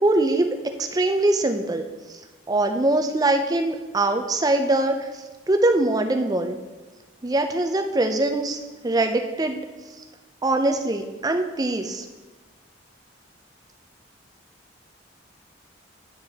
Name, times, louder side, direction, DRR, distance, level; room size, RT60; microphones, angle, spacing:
voice 1, 0.0-1.8 2.5-5.0 5.5-6.6 7.2-8.6 8.8-9.6 10.4-12.0, right 2 dB, 20° right, 6 dB, 0.4 m, -22 dB
10.5 x 4.9 x 2.9 m, 1.3 s
head